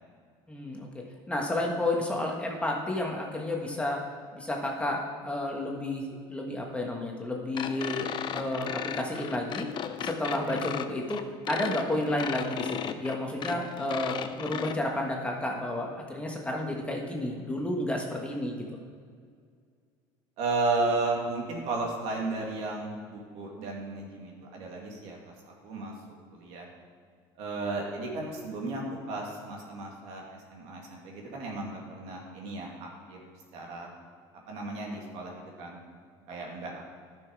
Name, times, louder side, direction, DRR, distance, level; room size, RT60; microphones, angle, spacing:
voice 1, 0.5-4.0 4.3-9.7 10.0-11.2 11.5-18.6, left 1 dB, 10° left, 0 dB, 1.5 m, -31 dB
sound 1, 7.5-14.7, left 9 dB, 40° left, 0.6 m, -35 dB
voice 2, 20.4-25.2 25.6-25.9 26.3-26.7 27.4-33.2 33.5-33.9 34.5-35.8 36.3-36.8, right 3 dB, 70° right, -1 dB, 2.4 m, -34 dB
11.5 x 6.2 x 4.8 m, 2.1 s
supercardioid pair, 110°, 11 cm